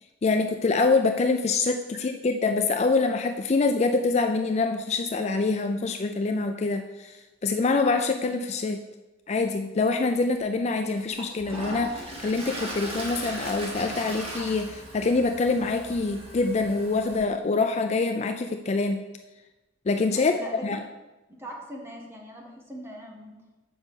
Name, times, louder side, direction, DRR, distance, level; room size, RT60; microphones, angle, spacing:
voice 1, 0.2-8.8 9.3-19.0 19.9-20.8, left 3 dB, 35° left, 6 dB, 0.4 m, -25 dB
Toilet flush, 10.3-10.4 11.0-17.2, right 1 dB, 35° right, 1.7 m, -38 dB
sound 1, 11.4-16.9, right 2 dB, 55° right, 0.7 m, -49 dB
voice 2, 20.1-20.6 21.3-23.4, equal, 15° right, -1 dB, 1.5 m, -41 dB
7.1 x 5.2 x 6.4 m, 1.1 s
head